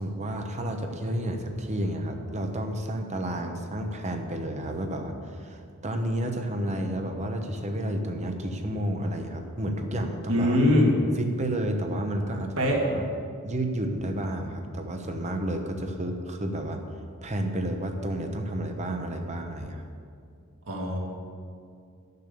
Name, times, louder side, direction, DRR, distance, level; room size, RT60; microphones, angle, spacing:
voice 1, 0.0-10.6 11.2-13.0 13.4-16.8 17.2-19.9, right 1 dB, 30° right, 4 dB, 0.9 m, -31 dB
voice 2, 10.3-10.9 12.6-12.8 20.7-21.0, left 1 dB, 75° right, -1 dB, 2.2 m, -22 dB
12.0 x 6.7 x 6.8 m, 2.4 s
head